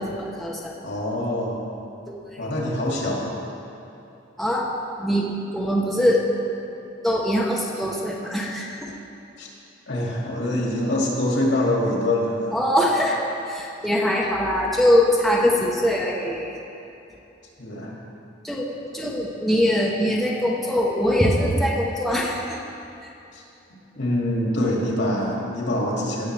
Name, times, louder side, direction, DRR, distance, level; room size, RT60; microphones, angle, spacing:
voice 1, 0.0-0.7 2.1-2.2 4.4-4.7 5.0-6.2 7.0-8.9 12.5-13.2 13.5-16.6 18.4-18.7 18.9-22.6, equal, ahead, -4 dB, 0.9 m, -22 dB
voice 2, 0.8-1.6 2.4-3.3 9.4-9.5 9.9-12.4 17.6-17.9 23.3-23.4 24.0-26.3, left 1 dB, 80° left, -3 dB, 2.3 m, -24 dB
17.0 x 7.3 x 3.3 m, 2.9 s
head